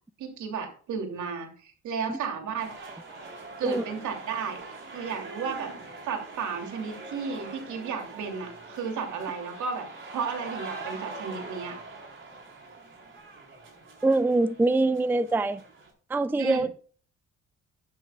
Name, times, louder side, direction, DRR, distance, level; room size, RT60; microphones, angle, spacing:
voice 1, 0.2-2.7 3.6-4.6 4.9-5.7 6.0-11.8 16.4-16.6, right 6 dB, 75° right, 3.0 m, -33 dB
sound 1, 2.6-15.9, right 3 dB, 40° right, 4.4 m, -43 dB
voice 2, 14.0-15.6 16.1-16.7, right 2 dB, 5° right, 0.4 m, -24 dB
12.5 x 10.5 x 2.4 m
cardioid pair, 90°, 30 cm